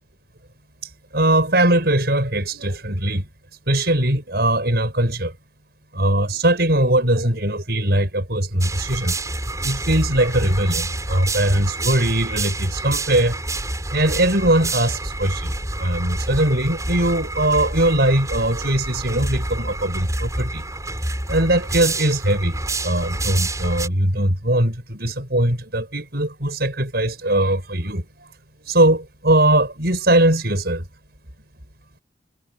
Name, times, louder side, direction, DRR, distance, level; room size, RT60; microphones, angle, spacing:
voice 1, 0.8-3.3 3.7-5.3 5.9-9.2 9.6-13.4 13.9-20.6 21.3-22.6 22.8-28.3 28.6-30.9, right 1 dB, 60° right, 7.9 m, -20 dB
sound 1, 8.6-23.9, right 2 dB, 20° right, 6.7 m, -28 dB
head